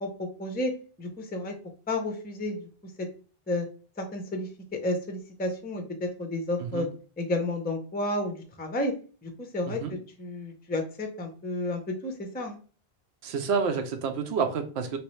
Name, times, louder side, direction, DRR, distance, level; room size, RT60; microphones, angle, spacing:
voice 1, 0.0-0.7 1.0-1.5 1.9-2.7 3.5-3.7 4.0-4.5 4.8-6.9 7.2-8.9 9.2-9.8 10.2-12.6, left 1 dB, 15° left, 4 dB, 0.4 m, -31 dB
voice 2, 9.7-10.0 13.2-15.0, right 5 dB, 90° right, 7 dB, 0.9 m, -29 dB
3.2 x 2.9 x 3.1 m, 0.38 s
omnidirectional pair, 1.1 m